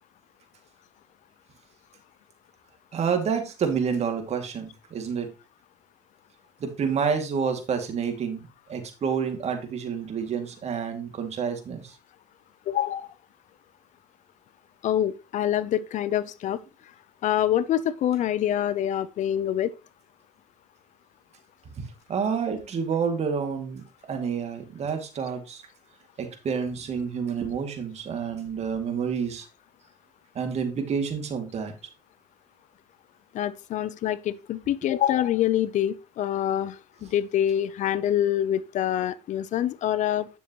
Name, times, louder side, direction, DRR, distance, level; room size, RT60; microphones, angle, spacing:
voice 1, 2.9-5.3 6.6-11.9 22.1-25.6 26.2-29.5 30.3-31.7, right 6 dB, 50° right, 2.4 m, -29 dB
voice 2, 12.7-13.1 14.8-16.6 17.2-19.7 33.3-36.7 37.0-40.3, left 11 dB, 60° left, 0.6 m, -25 dB
9.8 x 7.1 x 3.1 m
supercardioid pair, 85°, 14 cm